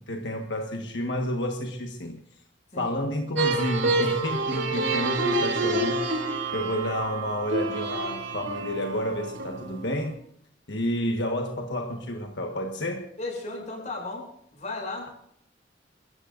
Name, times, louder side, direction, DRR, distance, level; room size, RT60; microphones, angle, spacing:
voice 1, 0.0-2.2 2.8-6.0 6.5-10.2 10.7-13.1, left 1 dB, 70° left, 1.5 m, -30 dB
sound 1, 3.4-10.1, right 2 dB, 85° right, 3.4 m, -28 dB
voice 2, 13.2-14.3 14.5-15.1, left 2 dB, 40° left, 7.4 m, -35 dB
28.5 x 14.0 x 2.6 m
head